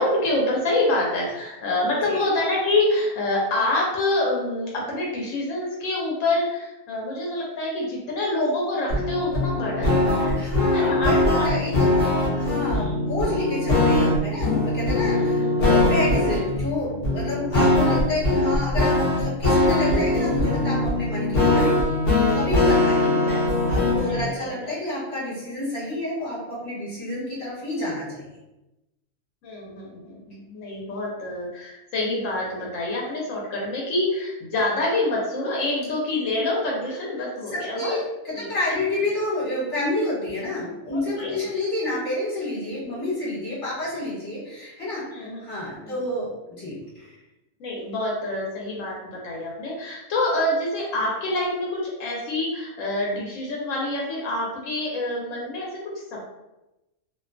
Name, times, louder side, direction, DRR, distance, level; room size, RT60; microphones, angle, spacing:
voice 1, 0.0-10.4 10.7-11.8 12.4-13.0 14.9-15.5 23.3-23.4 24.0-24.5 29.4-38.0 38.3-38.5 40.9-41.3 42.7-43.0 45.1-45.4 45.8-46.0 47.6-56.3, left 2 dB, 75° left, -3 dB, 1.0 m, -27 dB
sound 1, 8.9-24.2, left 2 dB, 55° left, 0.8 m, -21 dB
voice 2, 10.3-21.9 22.3-28.3 37.5-47.2, left 1 dB, 25° left, -7 dB, 1.1 m, -29 dB
2.5 x 2.2 x 2.4 m, 0.96 s
omnidirectional pair, 1.4 m